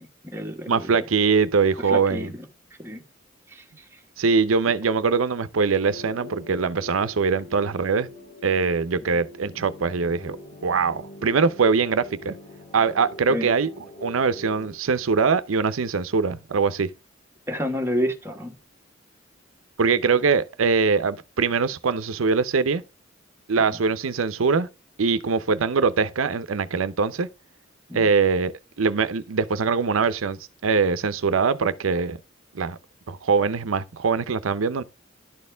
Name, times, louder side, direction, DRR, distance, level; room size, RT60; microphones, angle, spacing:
voice 1, 0.0-0.8 1.9-2.4 2.8-3.0 3.5-3.6 9.0-9.1 13.3-13.5 17.5-18.5 23.7-23.8 27.9-28.1, equal, 10° right, 1.4 m, -29 dB
voice 2, 0.7-2.3 4.2-8.1 8.4-10.4 10.6-12.3 12.7-13.7 14.0-16.9 19.8-22.8 23.5-24.7 25.0-27.3 27.9-32.2 32.5-32.8 33.1-34.8, right 5 dB, 90° right, 0.6 m, -22 dB
sound 1, 5.7-14.8, left 2 dB, 40° left, 2.5 m, -44 dB
11.5 x 4.3 x 3.4 m
head